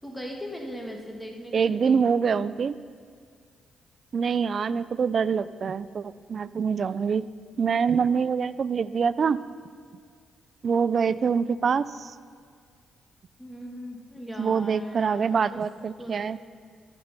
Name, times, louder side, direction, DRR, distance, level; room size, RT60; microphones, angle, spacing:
voice 1, 0.0-2.0 13.4-15.6 16.0-16.4, equal, 10° left, 0 dB, 1.6 m, -39 dB
voice 2, 1.5-2.8 4.1-7.3 7.6-9.4 10.6-12.1 14.4-16.4, right 6 dB, 50° right, 17 dB, 0.3 m, -25 dB
13.0 x 6.0 x 5.4 m, 2.1 s
cardioid pair, 80°, 0 cm